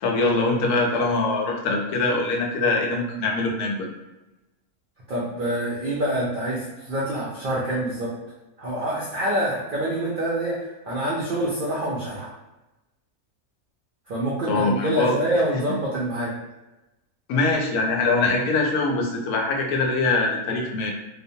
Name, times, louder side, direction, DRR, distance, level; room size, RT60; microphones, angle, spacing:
voice 1, 0.0-3.9 14.5-15.1 17.3-20.9, left 3 dB, 85° left, 1 dB, 1.1 m, -23 dB
voice 2, 5.1-8.1 8.6-12.3 14.1-16.3, right 1 dB, 90° right, -6 dB, 0.4 m, -26 dB
2.8 x 2.0 x 2.6 m, 1.0 s
omnidirectional pair, 1.5 m